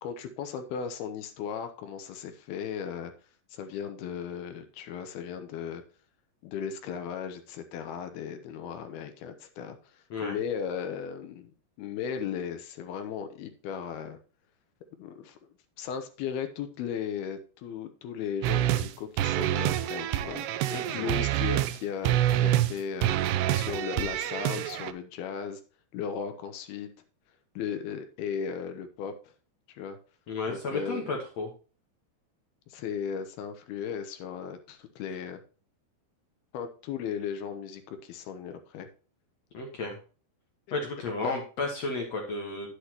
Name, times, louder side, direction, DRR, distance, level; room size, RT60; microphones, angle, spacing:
voice 1, 0.0-3.1 3.5-5.8 6.4-9.8 10.2-11.5 11.8-14.2 15.0-15.4 15.8-20.5 20.9-23.1 23.5-25.6 25.9-26.9 27.6-29.1 29.7-30.0 30.5-31.1 32.7-35.4 36.5-38.9 41.2-41.3, left 7 dB, 75° left, 8 dB, 2.8 m, -36 dB
sound 1, 18.4-18.9 19.2-21.8 22.0-22.7 23.0-24.9, right 13 dB, 90° right, 2.7 m, -27 dB
voice 2, 20.7-21.1 30.3-31.5 39.5-40.0 40.7-42.7, left 3 dB, 55° left, 0 dB, 2.0 m, -33 dB
10.0 x 8.3 x 2.9 m, 0.37 s
omnidirectional pair, 4.8 m